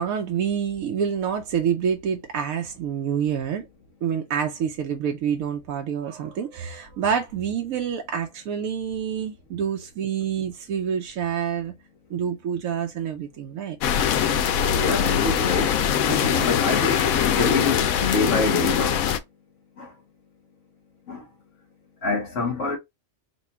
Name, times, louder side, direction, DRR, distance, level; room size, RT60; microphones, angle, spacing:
voice 1, 0.0-3.7 4.0-11.7 12.1-13.8 16.1-16.5, right 8 dB, 90° right, 1.1 m, -27 dB
sound 1, 13.8-19.2, left 9 dB, 85° left, 1.1 m, -22 dB
voice 2, 14.7-15.7 16.3-19.0 19.8-19.9 21.1-21.2 22.0-22.8, left 2 dB, 65° left, 1.6 m, -26 dB
4.2 x 2.3 x 4.1 m
omnidirectional pair, 1.4 m